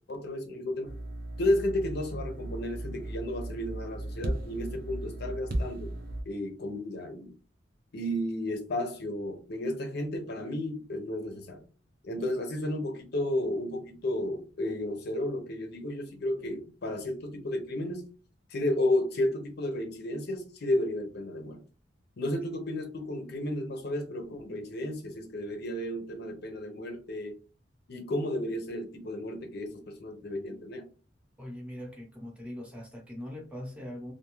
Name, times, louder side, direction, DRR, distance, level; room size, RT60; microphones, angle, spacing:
voice 1, 0.1-0.9 1.4-5.9 6.3-7.3 7.9-11.6 12.0-18.1 18.5-21.6 22.2-27.4 27.9-30.9, left 1 dB, 60° left, 0.6 m, -32 dB
sound 1, 0.8-6.2, right 1 dB, 50° right, 0.5 m, -36 dB
voice 2, 31.4-34.1, left 1 dB, 5° right, 0.7 m, -41 dB
2.5 x 2.3 x 3.0 m
head